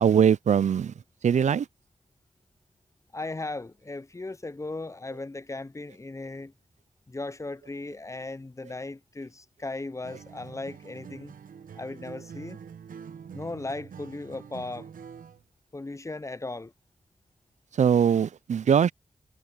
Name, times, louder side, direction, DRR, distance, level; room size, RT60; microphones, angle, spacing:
voice 1, 0.0-0.9 1.2-1.7 17.8-18.9, right 8 dB, 60° right, 0.4 m, -21 dB
voice 2, 3.1-6.5 7.1-11.3 11.7-12.6 13.3-14.9 15.7-16.7, left 2 dB, 20° left, 0.6 m, -37 dB
Acoustic guitar, 10.0-15.4, right 7 dB, 90° right, 1.0 m, -45 dB
cardioid pair, 55°, 14 cm